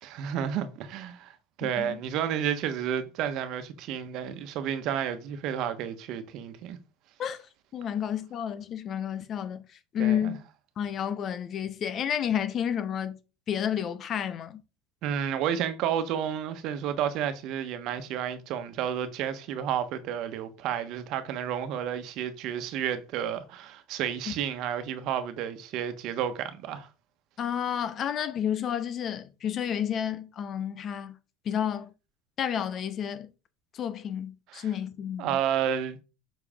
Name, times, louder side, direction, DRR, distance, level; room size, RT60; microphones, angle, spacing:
voice 1, 0.0-6.8 10.0-10.4 15.0-26.9 34.5-34.7 35.2-36.0, right 9 dB, 60° right, 1.2 m, -31 dB
voice 2, 7.7-9.6 9.9-10.4 10.8-13.2 13.5-14.6 24.3-24.4 27.4-31.2 31.4-31.9 32.4-33.3 33.7-35.4, left 9 dB, 40° left, 1.0 m, -30 dB
7.2 x 5.7 x 3.7 m
supercardioid pair, 105°, 0 cm